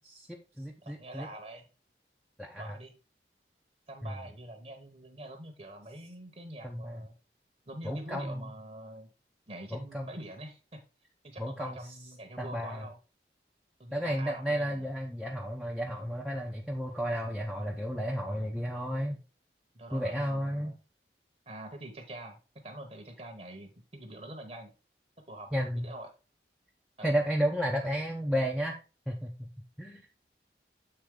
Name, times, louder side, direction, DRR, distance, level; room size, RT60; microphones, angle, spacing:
voice 1, 0.2-1.3 2.4-2.8 4.0-4.1 6.6-7.0 7.8-8.5 9.7-10.1 11.4-11.8 12.4-12.8 13.9-19.2 19.9-20.7 25.5-25.9 27.0-28.8 29.1-29.5 29.8-30.1, equal, ahead, 0 dB, 0.7 m, -32 dB
voice 2, 0.8-1.7 2.6-2.9 3.9-7.2 7.7-9.1 9.5-10.8 11.2-13.0 13.8-14.9 19.7-20.7 21.5-24.7 25.3-26.1 27.0-27.2, right 1 dB, 35° right, 4 dB, 1.0 m, -45 dB
7.9 x 3.9 x 3.7 m, 0.32 s
head